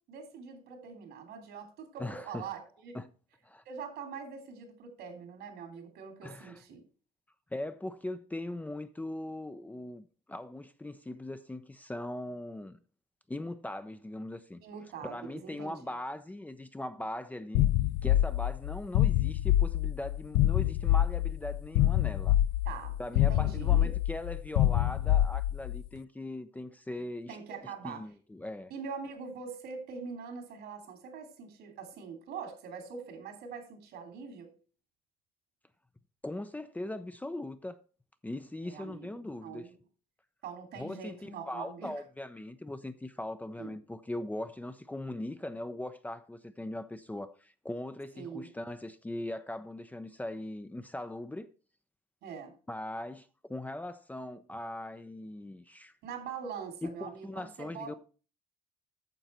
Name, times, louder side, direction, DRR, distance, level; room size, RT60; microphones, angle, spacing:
voice 1, 0.1-2.9 3.6-6.8 14.6-15.9 22.6-23.9 27.3-28.0 28.7-34.5 38.6-39.1 39.4-39.7 40.4-41.9 43.6-43.8 48.1-48.5 52.2-52.5 56.0-57.9, right 6 dB, 75° right, 3.0 m, -43 dB
voice 2, 2.0-2.5 2.9-3.1 3.4-3.6 6.2-6.6 7.5-12.8 13.3-14.6 15.0-17.7 18.0-22.4 23.0-27.4 27.6-28.7 36.2-37.8 38.2-39.7 40.7-51.5 52.7-55.9 56.8-57.9, left 1 dB, 10° left, 0.6 m, -40 dB
sound 1, 17.5-25.8, left 13 dB, 85° left, 0.4 m, -26 dB
9.2 x 6.8 x 4.3 m
cardioid pair, 110°, 17 cm